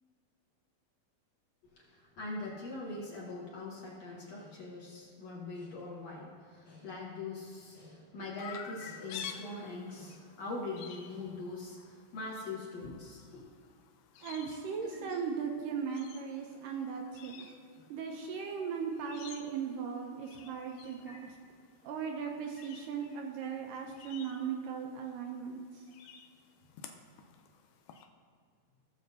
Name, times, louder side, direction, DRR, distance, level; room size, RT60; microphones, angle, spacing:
voice 1, 1.8-13.5 14.9-15.2 17.5-17.8 18.6-18.7 20.4-20.5 21.1-21.2, left 2 dB, 55° left, -5 dB, 2.2 m, -42 dB
Chirp tweet, 8.4-28.0, left 7 dB, 90° left, 1.7 m, -52 dB
voice 2, 14.2-17.5 17.9-21.4 21.8-25.9, right 6 dB, 80° right, 2 dB, 2.1 m, -38 dB
16.5 x 7.1 x 2.7 m, 2.1 s
omnidirectional pair, 4.2 m